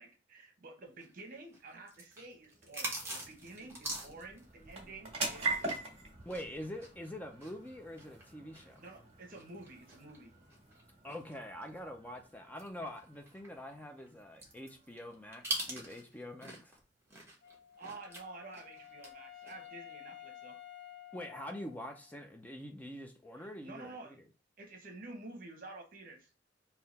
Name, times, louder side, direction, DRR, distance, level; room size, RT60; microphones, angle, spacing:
voice 1, 0.0-5.8 8.8-10.3 17.8-20.6 23.4-24.2 24.6-26.3, right 2 dB, 50° right, 1.1 m, -50 dB
sound 1, 1.0-5.9 6.2-11.8 12.2-12.3 12.6-16.8 17.1-19.1 19.4-19.7, right 1 dB, 15° right, 1.3 m, -44 dB
sound 2, 1.9-16.6, right 3 dB, 35° right, 1.8 m, -45 dB
voice 2, 6.3-8.8 11.0-16.8 21.1-24.2, left 1 dB, 10° left, 0.4 m, -45 dB
Wind instrument woodwind instrument, 17.4-22.2, left 11 dB, 65° left, 0.6 m, -52 dB
3.8 x 2.8 x 4.0 m
head